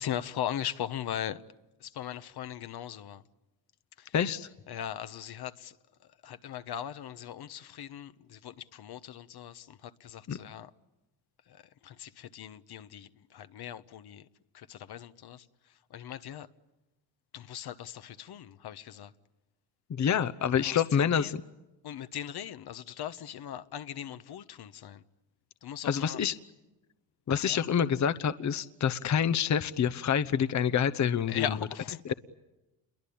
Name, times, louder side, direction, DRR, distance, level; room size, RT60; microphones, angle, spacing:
voice 1, 0.0-1.4 1.8-3.2 4.0-4.1 4.7-5.7 6.2-10.7 11.5-14.2 14.5-15.4 15.9-16.5 17.3-19.1 20.6-21.3 21.8-25.0 25.6-26.2 27.4-27.6 31.3-32.1, left 10 dB, 60° left, 1.2 m, -39 dB
voice 2, 4.1-4.5 10.3-10.4 19.9-21.4 25.8-26.3 27.3-31.6 32.0-32.1, left 8 dB, 40° left, 1.0 m, -27 dB
28.5 x 23.0 x 8.7 m
supercardioid pair, 75°, 44 cm